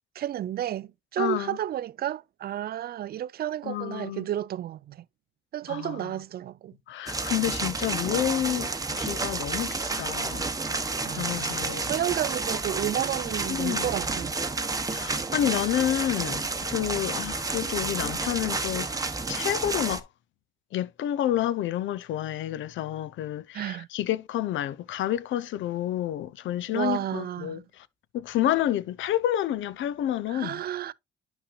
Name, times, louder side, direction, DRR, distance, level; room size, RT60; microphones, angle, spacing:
voice 1, 0.2-5.0 5.5-6.8 11.0-14.3 23.5-23.9 26.7-27.6 30.3-30.9, right 11 dB, 50° right, 0.4 m, -32 dB
voice 2, 1.2-1.6 3.6-4.3 5.7-6.1 6.9-8.7 9.0-10.5 11.1-11.9 13.5-13.9 14.9-18.9 19.3-20.1 20.7-27.9 28.1-30.6, left 12 dB, 75° left, 0.5 m, -29 dB
sound 1, 7.1-20.0, right 3 dB, 20° right, 0.8 m, -30 dB
9.9 x 5.7 x 2.3 m
cardioid pair, 90°, 20 cm